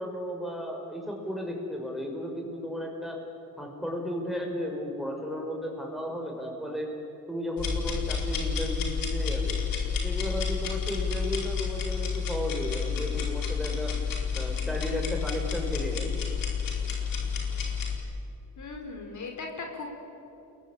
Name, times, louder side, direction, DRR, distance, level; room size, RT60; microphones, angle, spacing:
voice 1, 0.0-3.2 3.6-6.9 7.3-9.6 10.0-13.9 14.3-16.1, equal, ahead, 1 dB, 5.9 m, -34 dB
sound 1, 7.6-18.0, left 6 dB, 85° left, 4.5 m, -30 dB
voice 2, 18.6-19.9, left 3 dB, 60° left, 3 dB, 4.9 m, -38 dB
29.0 x 22.0 x 8.7 m, 2.7 s
cardioid pair, 95°, 33 cm